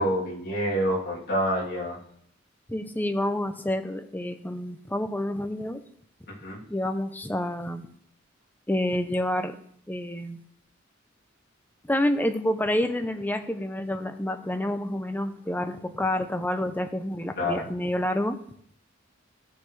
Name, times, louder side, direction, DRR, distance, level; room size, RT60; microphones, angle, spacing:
voice 1, 0.0-2.0 6.3-6.6 17.3-17.6, equal, 55° left, -5 dB, 3.2 m, -27 dB
voice 2, 2.7-5.8 6.7-7.9 8.7-9.6 9.9-10.4 11.9-18.4, left 1 dB, 10° left, 8 dB, 0.6 m, -28 dB
15.0 x 6.6 x 3.3 m, 0.66 s
head